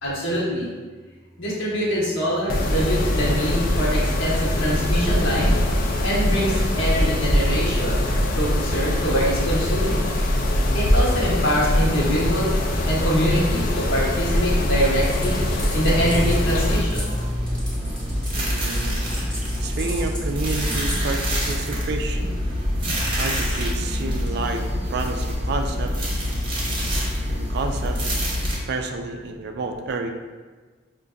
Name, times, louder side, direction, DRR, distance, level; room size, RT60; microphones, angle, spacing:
voice 1, 0.0-0.7 1.4-5.6 6.0-10.1 10.7-12.5 12.9-15.4 15.7-17.1, equal, 75° left, -6 dB, 1.1 m, -24 dB
Mechanisms, 2.5-16.8, left 1 dB, 45° left, 0.3 m, -22 dB
sound 1, 14.8-21.0, equal, 5° left, 0.8 m, -37 dB
sound 2, 15.8-28.6, equal, 25° right, 0.8 m, -25 dB
voice 2, 18.4-19.0 19.6-22.4 23.2-24.6 24.9-26.2 27.3-28.0 28.5-30.1, right 3 dB, 55° right, 5 dB, 0.3 m, -30 dB
5.1 x 2.5 x 2.3 m, 1.4 s
head